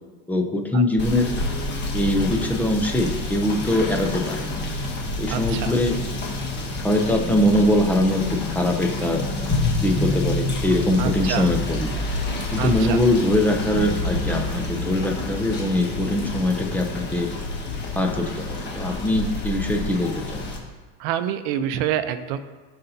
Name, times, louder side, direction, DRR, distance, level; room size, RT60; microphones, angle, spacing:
voice 1, 0.3-1.3 1.9-4.4 5.2-6.0 6.8-9.2 9.8-11.9 12.5-17.3 18.0-18.4 18.7-20.4, left 1 dB, 5° left, 3 dB, 0.3 m, -22 dB
Rain / Motor vehicle (road), 1.0-20.6, left 2 dB, 25° left, 1.3 m, -28 dB
voice 2, 5.3-5.7 11.0-11.5 12.6-13.0 21.0-22.4, right 10 dB, 55° right, 11 dB, 0.7 m, -27 dB
15.5 x 5.6 x 2.7 m, 1.3 s
supercardioid pair, 155°, 43 cm